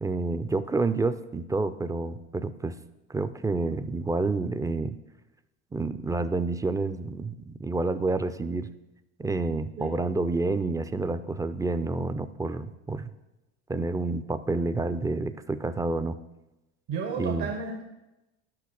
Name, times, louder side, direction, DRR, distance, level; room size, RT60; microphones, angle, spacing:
voice 1, 0.0-2.8 3.1-5.0 5.7-8.7 9.2-13.1 13.7-16.2 17.2-17.5, right 3 dB, 10° right, 12 dB, 0.3 m, -29 dB
voice 2, 16.9-17.8, right 5 dB, 70° right, 4 dB, 1.1 m, -32 dB
5.8 x 5.7 x 6.2 m, 0.97 s
supercardioid pair, 80°, 34 cm